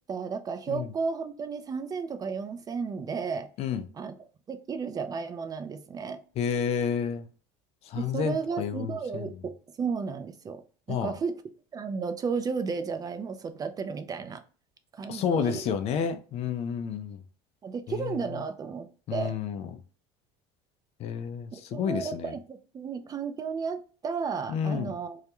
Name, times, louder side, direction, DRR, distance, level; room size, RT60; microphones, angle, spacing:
voice 1, 0.1-3.5 3.9-4.2 4.5-6.2 7.9-9.5 9.8-10.6 10.9-11.4 11.7-14.4 14.9-15.7 17.6-19.3 21.5-25.2, right 5 dB, 25° right, 0.3 m, -33 dB
voice 2, 6.4-7.3 7.8-9.3 10.9-11.1 15.1-17.2 17.9-18.2 19.1-19.7 21.0-22.3 24.5-24.9, left 7 dB, 50° left, 0.4 m, -30 dB
2.3 x 2.1 x 2.9 m
supercardioid pair, 100°, 14 cm